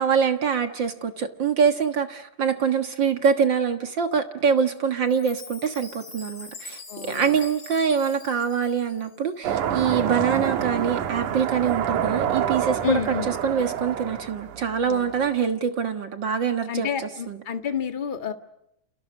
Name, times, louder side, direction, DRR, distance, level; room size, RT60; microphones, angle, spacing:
voice 1, 0.0-13.1 13.4-16.9 17.3-17.4, right 6 dB, 50° right, 7 dB, 1.5 m, -24 dB
Chime, 5.1-9.3, left 4 dB, 30° left, 3.8 m, -43 dB
voice 2, 6.9-7.4 12.8-13.4 14.9-15.3 16.7-18.3, left 8 dB, 65° left, 7 dB, 0.5 m, -30 dB
sound 1, 9.4-15.4, right 9 dB, 65° right, 2.9 m, -28 dB
29.5 x 29.5 x 6.4 m, 0.81 s
omnidirectional pair, 3.9 m